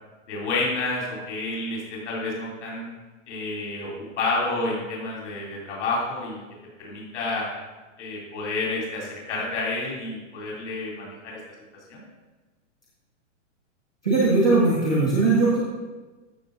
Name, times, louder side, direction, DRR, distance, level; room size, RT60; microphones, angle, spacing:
voice 1, 0.3-2.8 3.3-3.9 4.2-6.4 6.8-7.5 8.0-11.4 11.9-12.0, left 3 dB, 65° left, -4 dB, 3.6 m, -29 dB
voice 2, 14.0-15.6, right 3 dB, 5° left, -6 dB, 0.3 m, -19 dB
13.5 x 6.4 x 4.0 m, 1.2 s
supercardioid pair, 175°, 38 cm